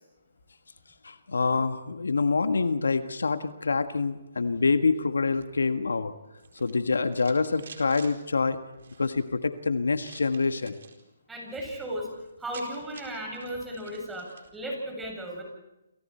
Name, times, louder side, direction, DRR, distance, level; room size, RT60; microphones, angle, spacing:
voice 1, 1.0-6.1 6.6-8.6 9.0-10.8, left 4 dB, 80° left, 9 dB, 1.6 m, -26 dB
sound 1, 6.3-8.1 8.7-9.3 10.0-11.0 11.4-11.8 12.0-12.1 12.3-14.5, right 5 dB, 65° right, 4.5 m, -50 dB
voice 2, 11.3-12.1 12.4-15.4, equal, 5° right, 0 dB, 7.4 m, -35 dB
28.5 x 28.0 x 4.5 m, 0.93 s
hypercardioid pair, 145°, 0 cm